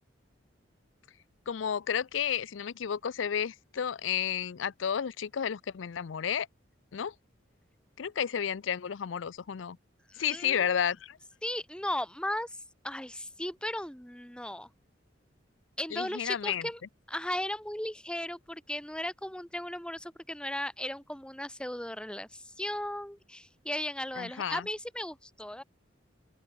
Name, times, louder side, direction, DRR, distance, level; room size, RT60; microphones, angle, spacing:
voice 1, 1.5-6.5 6.9-7.1 8.0-9.8 10.2-11.2 15.9-16.7 24.2-24.7, left 8 dB, 90° left, 0.5 m, -32 dB
voice 2, 10.1-10.7 11.4-12.6 12.8-14.7 15.8-16.8 17.1-25.6, left 1 dB, 5° left, 2.6 m, -36 dB
open air
head